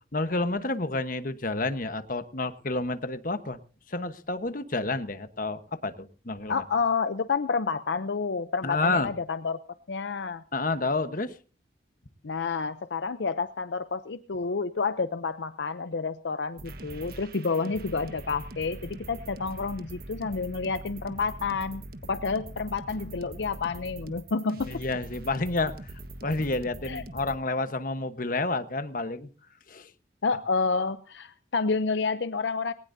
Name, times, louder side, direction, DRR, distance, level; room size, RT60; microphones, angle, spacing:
voice 1, 0.1-3.6 3.9-6.6 8.6-9.1 10.5-11.3 24.7-25.9 26.2-29.3 29.7-29.9, left 2 dB, 50° left, 10 dB, 1.2 m, -29 dB
voice 2, 6.5-9.6 9.9-10.4 12.2-21.8 22.1-24.8 26.8-27.0 30.2-32.7, left 4 dB, 70° left, 12 dB, 0.6 m, -29 dB
sound 1, 16.6-27.4, right 2 dB, 55° right, 1.4 m, -42 dB
20.0 x 18.5 x 2.7 m, 0.37 s
head